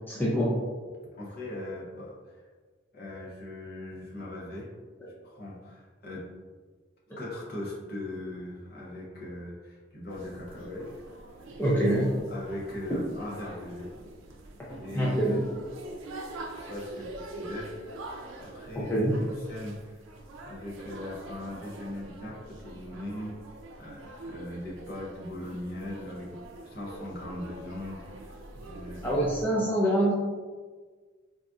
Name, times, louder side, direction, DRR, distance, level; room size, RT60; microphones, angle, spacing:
voice 1, 0.1-0.6 11.6-12.1 14.7-15.4 18.7-19.2 29.0-30.1, right 1 dB, 10° left, -7 dB, 0.4 m, -25 dB
voice 2, 1.1-2.4 2.9-4.7 5.2-6.3 7.2-10.9 12.3-13.9 14.8-15.4 16.6-19.1 19.5-20.0 20.4-23.4 23.8-29.2 29.5-29.6, left 1 dB, 50° left, -5 dB, 0.8 m, -40 dB
sound 1, 10.1-29.4, right 2 dB, 85° right, 0.4 m, -45 dB
4.0 x 2.5 x 2.3 m, 1.5 s
head